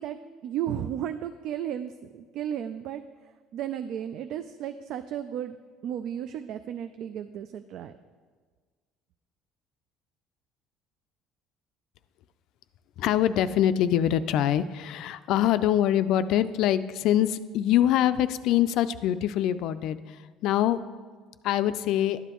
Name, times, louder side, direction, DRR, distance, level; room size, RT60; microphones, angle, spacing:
voice 1, 0.0-3.0 3.5-5.6 5.8-7.9, right 10 dB, 60° right, 9 dB, 0.3 m, -34 dB
voice 2, 13.0-20.8 21.4-22.2, left 11 dB, 65° left, 13 dB, 0.4 m, -24 dB
12.0 x 8.1 x 3.0 m, 1.5 s
cardioid pair, 120°, 0 cm